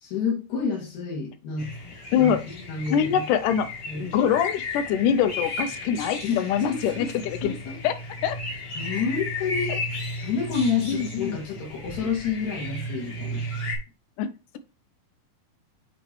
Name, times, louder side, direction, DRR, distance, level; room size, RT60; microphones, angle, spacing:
voice 1, 0.0-1.7 2.1-3.2 3.9-4.1 6.2-7.1 7.4-7.8 8.8-9.8 10.2-13.4, left 5 dB, 65° left, 3.1 m, -29 dB
sound 1, 1.6-13.8, left 1 dB, 45° left, 2.4 m, -34 dB
voice 2, 2.1-2.4 2.9-3.7 4.0-7.6 7.8-8.0 8.2-8.4 9.7-9.8 10.8-11.4 14.2-14.6, left 8 dB, 80° left, 2.2 m, -24 dB
8.6 x 3.0 x 4.6 m
omnidirectional pair, 3.7 m